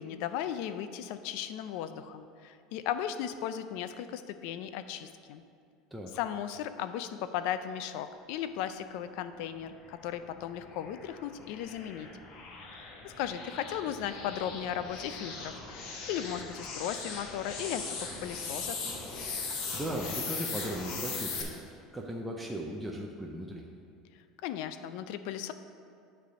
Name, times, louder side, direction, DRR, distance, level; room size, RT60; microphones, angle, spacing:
voice 1, 0.0-5.4 6.1-12.1 13.0-15.8 16.1-18.8 24.4-25.5, left 10 dB, 65° left, 11 dB, 0.4 m, -36 dB
sound 1, 9.9-21.4, left 4 dB, 50° left, 1.1 m, -40 dB
voice 2, 19.5-23.7, right 1 dB, 5° right, -1 dB, 0.5 m, -38 dB
9.2 x 3.4 x 6.1 m, 2.4 s
cardioid pair, 160°, 0 cm